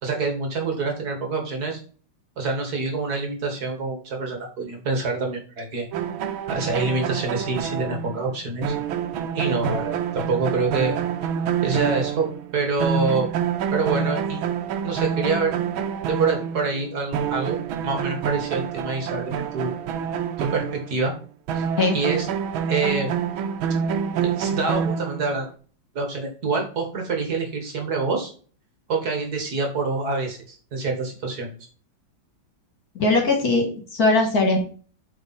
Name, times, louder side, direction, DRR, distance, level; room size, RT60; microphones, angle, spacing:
voice 1, 0.0-1.8 2.4-5.9 6.5-8.7 9.3-11.0 11.6-13.3 13.7-14.4 14.8-15.6 16.1-17.6 17.8-19.7 20.4-21.1 21.5-21.6 21.9-22.3 22.7-23.1 24.2-25.5 26.0-28.3 28.9-31.5, right 4 dB, 55° right, 3 dB, 2.0 m, -26 dB
sound 1, 5.9-12.5 12.8-21.0 21.5-25.4, right 7 dB, 90° right, 1.6 m, -27 dB
voice 2, 33.0-34.6, left 2 dB, 50° left, 2 dB, 2.0 m, -20 dB
8.0 x 4.0 x 4.1 m, 0.40 s
omnidirectional pair, 2.1 m